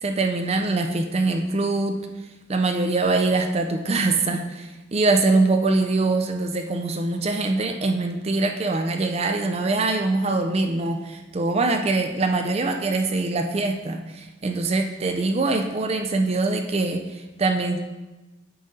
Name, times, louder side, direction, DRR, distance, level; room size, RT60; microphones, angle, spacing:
voice 1, 0.0-2.0 2.5-17.8, right 3 dB, 30° right, 5 dB, 0.4 m, -23 dB
8.7 x 3.9 x 4.0 m, 1.1 s
head